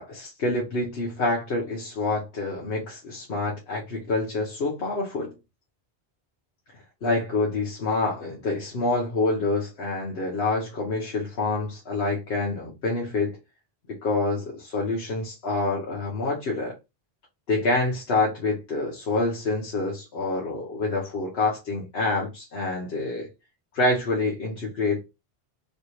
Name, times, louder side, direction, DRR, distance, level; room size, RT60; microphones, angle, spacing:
voice 1, 0.0-5.3 7.0-13.4 13.9-16.7 17.5-23.3 23.7-25.0, left 2 dB, 75° left, 1.1 m, -27 dB
3.2 x 2.7 x 2.9 m
omnidirectional pair, 1.1 m